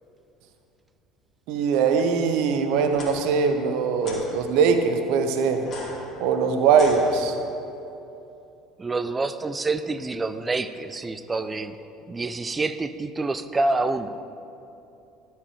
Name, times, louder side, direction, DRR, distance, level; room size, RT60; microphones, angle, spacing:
voice 1, 1.5-5.7 6.2-7.4, right 5 dB, 55° right, 7 dB, 0.7 m, -21 dB
sound 1, 2.9-3.1 4.0-4.3 5.6-7.6, left 2 dB, 35° left, 2.1 m, -39 dB
voice 2, 8.8-11.8 12.1-14.2, right 3 dB, 20° right, 12 dB, 0.4 m, -27 dB
12.0 x 4.7 x 4.9 m, 2.9 s
figure-of-eight pair, 65°, 0 cm